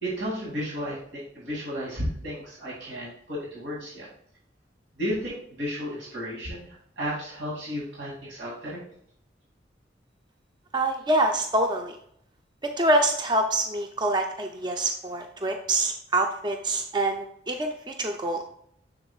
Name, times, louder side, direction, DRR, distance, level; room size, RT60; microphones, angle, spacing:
voice 1, 0.0-4.1 5.0-8.8, equal, 90° right, -6 dB, 2.6 m, -33 dB
voice 2, 10.7-12.0 12.6-18.4, right 2 dB, 25° right, 4 dB, 0.5 m, -26 dB
6.9 x 6.9 x 2.3 m, 0.68 s
head